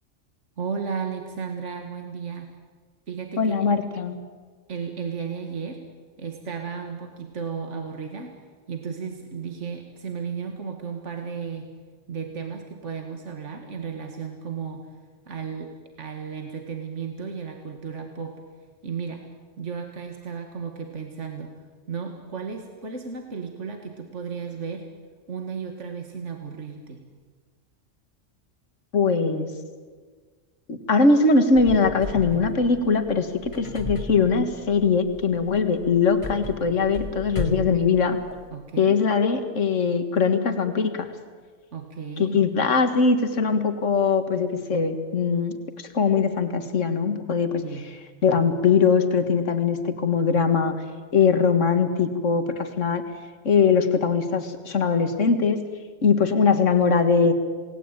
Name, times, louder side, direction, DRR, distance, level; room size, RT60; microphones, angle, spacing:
voice 1, 0.6-2.5 3.1-3.6 4.7-5.8 6.2-8.4 8.7-11.7 12.1-14.9 15.3-18.4 18.8-19.2 19.6-21.5 21.9-24.9 25.3-27.0 38.5-39.0 41.7-42.5 47.6-47.9, right 6 dB, 70° right, 4 dB, 2.3 m, -34 dB
voice 2, 3.4-4.2 28.9-29.5 30.7-38.2 38.8-41.1 42.2-47.6 48.2-50.8 51.1-53.1 53.4-55.6 56.0-57.3, left 5 dB, 75° left, 8 dB, 2.1 m, -21 dB
sound 1, 31.5-38.5, left 2 dB, 25° left, 2.3 m, -36 dB
28.5 x 19.5 x 9.0 m, 1.5 s
omnidirectional pair, 1.3 m